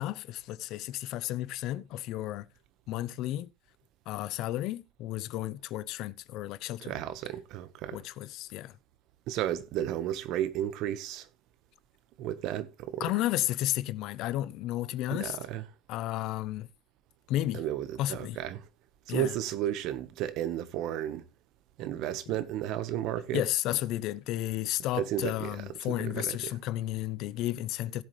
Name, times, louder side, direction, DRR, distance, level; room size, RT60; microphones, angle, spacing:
voice 1, 0.0-2.5 2.9-3.5 4.1-6.9 7.9-8.7 13.0-15.4 15.9-16.7 17.3-17.6 18.0-18.4 19.1-19.3 22.3-22.4 23.3-28.0, left 14 dB, 65° left, 0.7 m, -32 dB
voice 2, 6.8-8.0 9.3-11.3 12.2-13.3 15.1-15.7 17.5-18.7 19.1-21.2 21.8-23.5 24.9-26.6, right 11 dB, 65° right, 1.3 m, -33 dB
16.5 x 7.6 x 3.2 m
cardioid pair, 120°, 0 cm